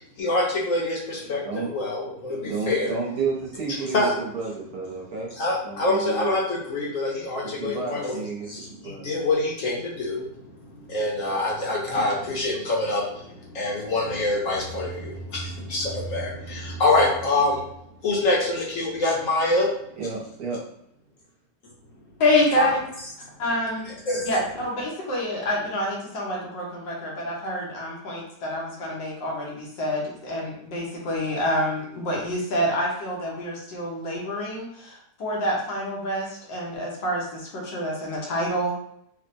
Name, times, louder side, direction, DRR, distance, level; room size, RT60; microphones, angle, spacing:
voice 1, 0.2-1.4 1.7-2.9 3.9-4.1 5.3-8.1 8.4-17.6 18.0-19.7 22.6-22.7 24.1-24.3, left 2 dB, 60° left, -3 dB, 0.9 m, -25 dB
voice 2, 2.5-5.3 5.6-6.3 7.4-9.0 20.0-20.6, right 4 dB, 65° right, -2 dB, 1.3 m, -31 dB
sound 1, 14.2-18.7, right 3 dB, 45° right, 0.9 m, -39 dB
voice 3, 22.2-22.8 23.4-23.9 24.2-38.7, left 1 dB, 90° left, -3 dB, 1.7 m, -27 dB
4.5 x 2.1 x 2.6 m, 0.71 s
omnidirectional pair, 1.9 m